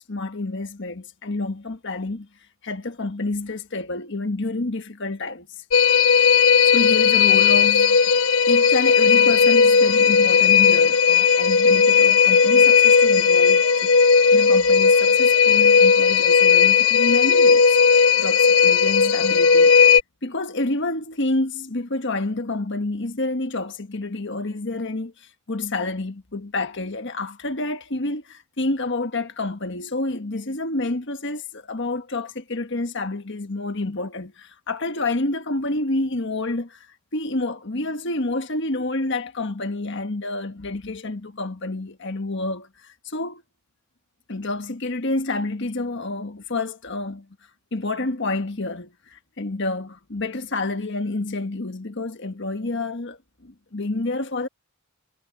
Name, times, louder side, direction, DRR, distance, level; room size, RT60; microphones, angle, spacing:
voice 1, 0.1-2.3 2.6-5.6 6.6-8.0 8.5-13.9 14.3-17.8 18.2-19.7 20.2-36.9 37.1-43.4 44.3-47.3 47.7-54.5, left 2 dB, 55° left, 1.5 m, -28 dB
sound 1, 5.7-20.0, left 6 dB, 85° left, 1.1 m, -16 dB
head